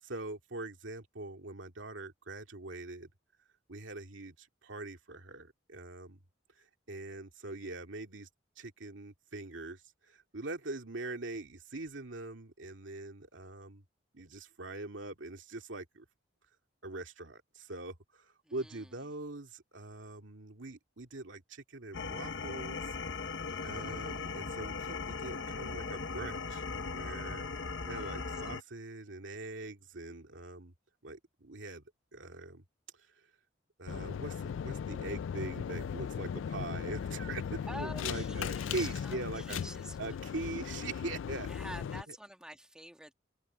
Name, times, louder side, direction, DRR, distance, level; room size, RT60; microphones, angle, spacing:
voice 1, 0.0-3.1 3.7-6.2 6.6-8.3 8.6-13.8 14.1-16.0 16.8-22.9 23.6-26.6 26.9-27.4 27.9-30.7 31.0-31.8 32.1-32.6 33.8-39.6 40.0-42.2, right 2 dB, 85° right, 2.3 m, -43 dB
voice 2, 18.4-18.9 23.5-24.2 27.9-28.2 37.7-40.2 41.4-43.1, right 1 dB, 5° right, 1.7 m, -48 dB
sound 1, 21.9-28.6, left 4 dB, 70° left, 1.1 m, -38 dB
sound 2, 33.9-42.0, left 7 dB, 90° left, 0.3 m, -38 dB
open air
head